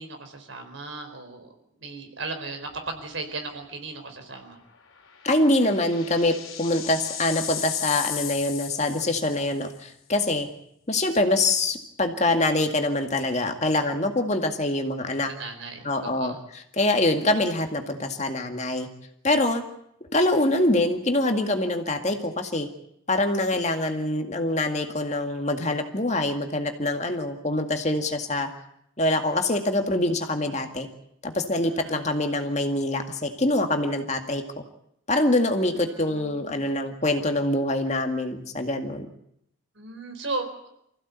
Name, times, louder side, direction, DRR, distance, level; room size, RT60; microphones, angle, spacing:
voice 1, 0.0-1.5 1.8-4.6 15.4-16.4 31.6-32.0 35.6-36.7 39.8-40.7, right 3 dB, 70° right, 5 dB, 4.5 m, -36 dB
sound 1, 2.7-3.1 3.4-3.5 5.0-9.6, left 10 dB, 85° left, 3.0 m, -35 dB
voice 2, 5.2-10.5 10.9-15.3 15.8-18.9 19.2-19.6 20.1-22.7 23.1-28.5 29.0-30.9 31.2-34.4 35.1-39.1, left 2 dB, 35° left, 5 dB, 2.0 m, -24 dB
25.5 x 16.0 x 8.4 m, 0.76 s
head